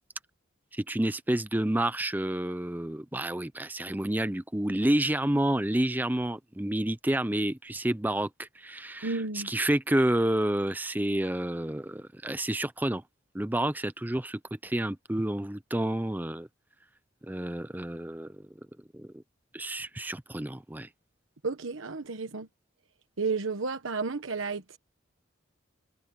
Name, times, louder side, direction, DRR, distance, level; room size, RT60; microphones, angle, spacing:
voice 1, 0.7-13.0 13.3-16.5 17.3-18.5 18.9-19.2 19.5-20.9, right 1 dB, 10° right, 0.5 m, -29 dB
voice 2, 9.0-9.5 21.4-22.5 23.2-24.8, right 4 dB, 85° right, 1.2 m, -32 dB
head